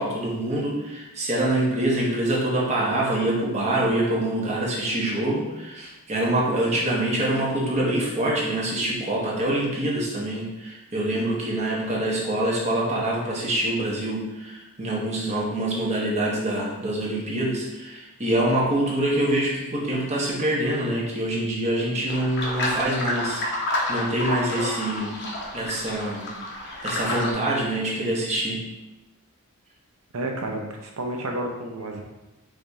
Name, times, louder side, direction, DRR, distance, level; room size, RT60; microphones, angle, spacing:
voice 1, 0.0-25.2 25.5-26.3 26.8-28.6, right 1 dB, 30° right, -4 dB, 1.0 m, -25 dB
sound 1, 22.1-27.3, left 1 dB, 50° left, 0.9 m, -29 dB
voice 2, 30.1-32.0, right 1 dB, 65° right, 1 dB, 0.7 m, -30 dB
5.0 x 2.7 x 3.5 m, 1.0 s
head